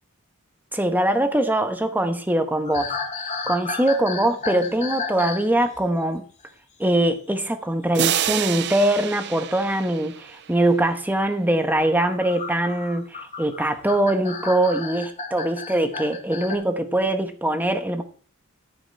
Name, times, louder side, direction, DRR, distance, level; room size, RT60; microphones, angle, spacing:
voice 1, 0.7-3.0 3.5-6.3 6.8-18.0, right 1 dB, 10° right, 1.1 m, -22 dB
sound 1, 2.6-5.5 5.8-6.1 8.3-8.5 9.8-9.9 11.8-16.6, left 4 dB, 35° left, 2.2 m, -33 dB
sound 2, 7.9-10.6, right 11 dB, 55° right, 0.4 m, -28 dB
14.5 x 6.0 x 4.6 m
head